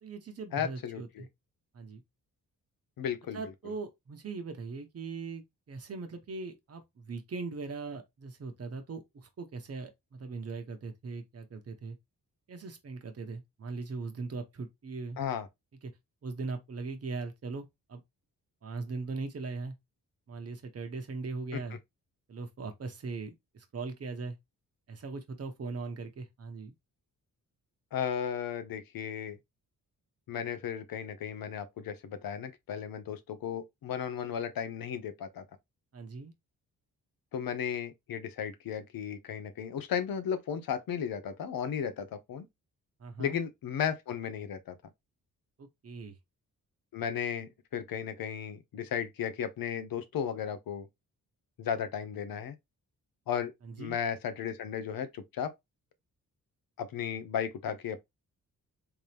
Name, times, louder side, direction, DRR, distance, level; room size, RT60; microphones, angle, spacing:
voice 1, 0.0-1.3 1.7-2.0 3.3-12.0 12.5-15.2 15.8-15.9 16.2-18.0 18.6-19.7 20.3-21.8 22.3-24.4 24.9-26.7 35.9-36.3 43.0-43.4 45.6-46.2 53.6-54.0, right 4 dB, 45° right, 1.0 m, -40 dB
voice 2, 0.5-1.2 3.0-3.4 15.2-15.5 21.5-21.6 27.9-29.4 30.3-35.4 37.3-42.4 43.2-44.7 46.9-50.9 51.6-52.5 53.3-53.5 53.8-55.5 56.8-58.0, left 8 dB, 80° left, 0.8 m, -35 dB
3.5 x 2.9 x 3.4 m
wide cardioid pair, 125°, 35 cm